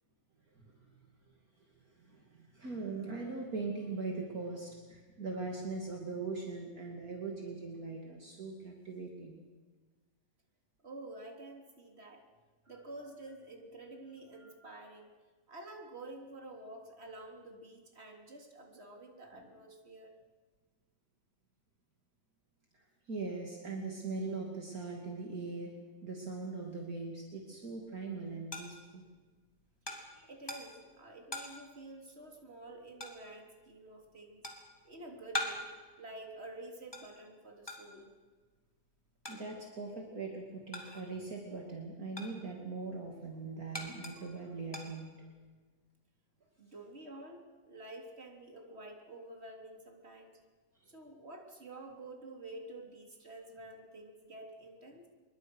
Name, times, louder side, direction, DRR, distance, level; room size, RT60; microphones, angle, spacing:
voice 1, 0.5-1.0 1.6-9.4 14.4-14.7 19.4-19.5 22.7-25.7 26.0-29.0 30.1-30.3 39.3-45.3, right 3 dB, 55° right, 0 dB, 3.1 m, -41 dB
voice 2, 10.8-12.2 12.7-15.1 15.5-20.1 30.3-34.5 34.8-35.7 36.0-38.1 46.6-50.3 50.8-55.1, right 2 dB, 35° right, 1 dB, 3.8 m, -49 dB
sound 1, 27.5-41.3 41.6-45.5, left 1 dB, 15° left, 3.4 m, -45 dB
27.0 x 23.0 x 6.3 m, 1.4 s
omnidirectional pair, 1.9 m